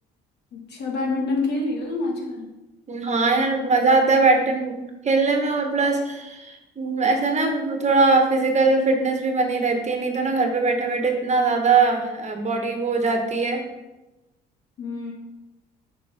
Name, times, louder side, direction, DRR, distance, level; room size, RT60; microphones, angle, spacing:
voice 1, 0.5-2.5 14.8-15.1, left 3 dB, 60° left, 0 dB, 2.0 m, -27 dB
voice 2, 2.9-13.6, right 3 dB, 35° right, 4 dB, 1.4 m, -21 dB
7.0 x 5.6 x 3.7 m, 1.0 s
hypercardioid pair, 65°, 20 cm